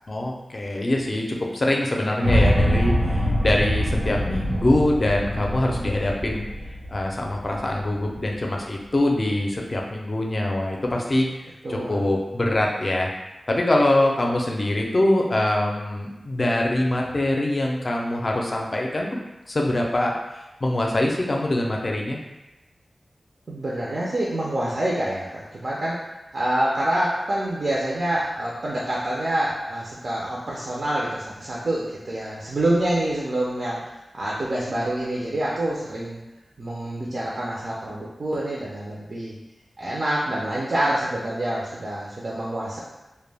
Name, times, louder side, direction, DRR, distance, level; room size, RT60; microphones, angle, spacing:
voice 1, 0.1-6.4 6.9-11.3 11.7-13.1 13.5-19.2 19.5-20.1 20.6-22.2, left 1 dB, 45° left, 0 dB, 0.4 m, -23 dB
sound 1, 2.2-8.3, equal, 75° right, 0.8 m, -24 dB
voice 2, 11.6-12.0 23.5-26.0 26.3-33.8 34.1-36.2 36.6-39.3 39.8-42.8, right 1 dB, 60° right, -6 dB, 0.4 m, -26 dB
2.1 x 2.1 x 3.3 m, 1.0 s
wide cardioid pair, 85°, 0 cm